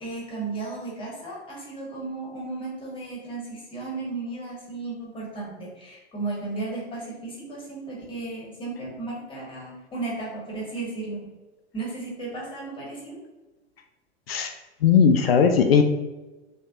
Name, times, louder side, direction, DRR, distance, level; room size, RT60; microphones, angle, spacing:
voice 1, 0.0-11.4 11.7-13.2, right 3 dB, 15° left, -4 dB, 1.1 m, -34 dB
voice 2, 14.8-15.8, left 6 dB, 60° left, 6 dB, 0.4 m, -18 dB
3.3 x 3.1 x 2.8 m, 1.1 s
figure-of-eight pair, 90°, 34 cm